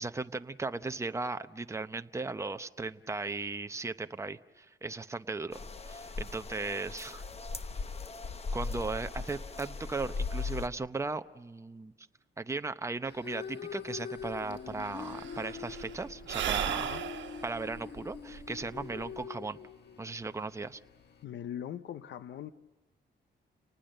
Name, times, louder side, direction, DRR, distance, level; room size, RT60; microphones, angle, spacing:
voice 1, 0.0-5.6 5.8-7.2 8.5-11.9 12.4-16.9 17.4-19.6 20.0-20.8, right 3 dB, 15° right, 9 dB, 0.8 m, -37 dB
sound 1, 5.5-10.7, left 4 dB, 35° left, 1.1 m, -38 dB
sound 2, 13.0-21.2, left 7 dB, 65° left, 1.3 m, -44 dB
Sigh / Breathing, 14.2-14.3 14.5-19.2, right 9 dB, 80° right, 1.3 m, -36 dB
voice 2, 16.7-17.1 21.2-22.5, left 10 dB, 85° left, 13 dB, 0.8 m, -41 dB
30.0 x 19.5 x 6.6 m, 1.2 s
cardioid pair, 110°, 19 cm